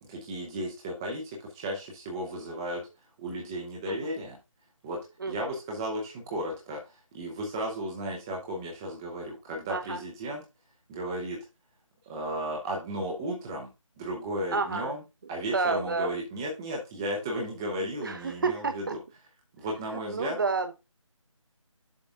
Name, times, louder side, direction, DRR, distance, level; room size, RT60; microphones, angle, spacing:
voice 1, 0.0-2.8 3.2-4.4 4.8-5.0 5.3-10.4 10.9-11.4 12.0-13.7 14.0-15.0 15.3-19.0 19.6-20.4, right 1 dB, 5° right, 0.6 m, -34 dB
voice 2, 14.5-14.9 15.5-16.1 18.0-19.0 20.1-20.7, right 4 dB, 40° right, 0.8 m, -30 dB
7.2 x 3.7 x 5.3 m
figure-of-eight pair, 165°, 17 cm